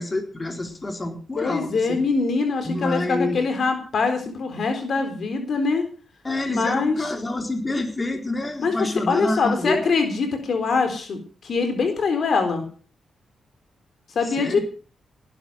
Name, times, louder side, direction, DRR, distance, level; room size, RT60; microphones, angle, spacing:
voice 1, 0.0-2.0 2.6-3.4 6.2-9.8 14.3-14.6, left 2 dB, 25° left, 4 dB, 4.1 m, -27 dB
voice 2, 1.4-5.8 6.5-7.0 8.6-12.6 14.2-14.6, left 4 dB, 60° left, 7 dB, 3.8 m, -23 dB
18.0 x 11.5 x 6.3 m, 0.39 s
cardioid pair, 85°, 0 cm